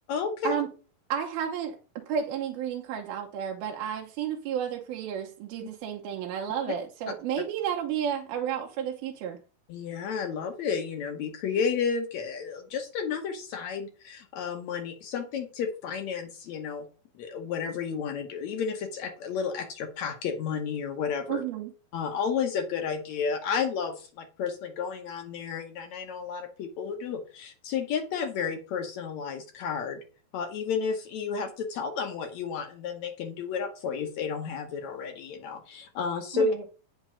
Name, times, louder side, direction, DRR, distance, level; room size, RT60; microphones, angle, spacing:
voice 1, 0.1-0.6 9.7-16.9 17.2-21.4 21.9-30.0 30.3-36.5, left 6 dB, 70° left, 6 dB, 1.8 m, -32 dB
voice 2, 1.1-9.4 21.3-21.7 36.3-36.6, right 9 dB, 85° right, 1 dB, 2.7 m, -32 dB
9.0 x 5.9 x 5.4 m, 0.37 s
omnidirectional pair, 4.2 m